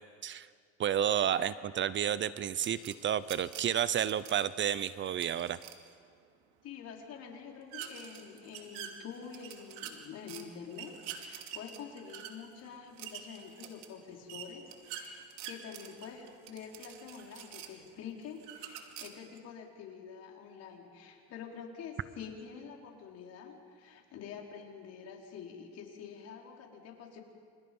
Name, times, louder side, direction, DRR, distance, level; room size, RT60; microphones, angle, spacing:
voice 1, 0.8-5.6, right 9 dB, 40° right, 16 dB, 0.8 m, -31 dB
sound 1, 2.6-5.9 7.7-10.4 10.7-17.9 18.4-19.4, right 9 dB, 80° right, 2.7 m, -47 dB
voice 2, 6.6-27.2, left 7 dB, 55° left, 1 dB, 4.9 m, -47 dB
30.0 x 28.0 x 5.6 m, 2.1 s
supercardioid pair, 110°, 30 cm